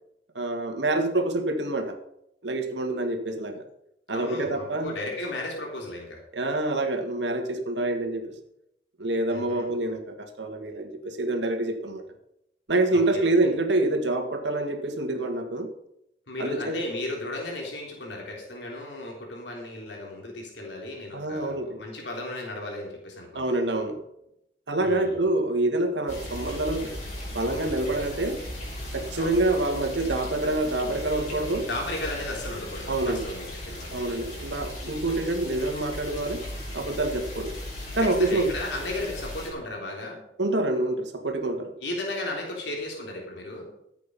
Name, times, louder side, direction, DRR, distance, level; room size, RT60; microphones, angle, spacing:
voice 1, 0.3-2.0 2.4-3.6 4.1-4.9 6.3-8.2 9.0-12.0 12.7-15.7 16.4-16.8 21.1-21.8 23.3-24.0 24.7-27.0 27.3-28.4 28.9-31.7 32.9-33.3 33.9-36.4 36.7-37.6 37.9-38.5 40.4-41.7, right 2 dB, 85° right, 5 dB, 2.0 m, -26 dB
voice 2, 4.1-6.2 9.3-9.7 12.9-13.3 16.3-23.5 24.8-25.2 29.1-29.4 31.7-34.0 38.0-40.2 41.8-43.7, left 1 dB, 85° left, -1 dB, 3.5 m, -35 dB
sound 1, 26.1-39.5, left 1 dB, 40° left, 5.5 m, -37 dB
14.5 x 8.3 x 5.4 m, 0.80 s
head